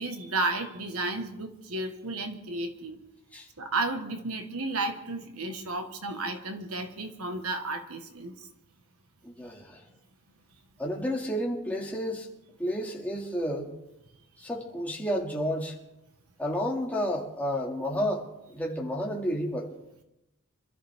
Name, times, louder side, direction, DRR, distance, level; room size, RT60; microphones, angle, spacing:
voice 1, 0.0-3.0 3.6-8.5, right 2 dB, 70° right, 1.6 m, -33 dB
voice 2, 9.2-9.8 10.8-12.3 12.6-13.7 14.4-15.8 16.4-18.3 18.5-19.7, equal, 5° left, 2.4 m, -31 dB
26.0 x 13.5 x 3.7 m
head